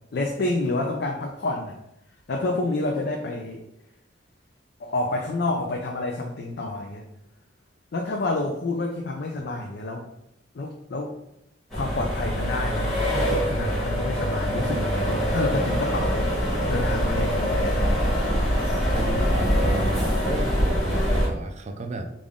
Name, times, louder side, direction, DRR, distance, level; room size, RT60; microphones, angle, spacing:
voice 1, 0.1-1.8 2.3-3.6 4.8-7.0 7.9-10.1 10.5-11.1 11.7-18.0, left 2 dB, 60° left, 1 dB, 0.4 m, -29 dB
sound 1, 11.7-21.3, equal, ahead, 1.1 m, -24 dB
voice 2, 18.9-22.1, right 2 dB, 40° right, 6 dB, 0.4 m, -33 dB
3.6 x 2.5 x 3.5 m, 0.79 s
head